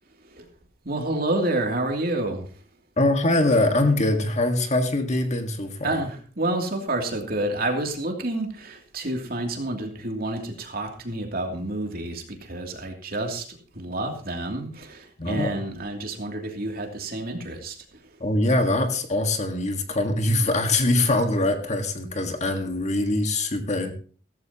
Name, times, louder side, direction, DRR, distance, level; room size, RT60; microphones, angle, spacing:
voice 1, 0.8-2.5 5.8-13.5 13.7-17.8, right 2 dB, 55° right, 3 dB, 2.8 m, -29 dB
voice 2, 3.0-6.0 15.2-15.5 18.2-23.9, left 2 dB, 40° left, 6 dB, 1.7 m, -23 dB
16.0 x 14.0 x 2.9 m, 0.41 s
head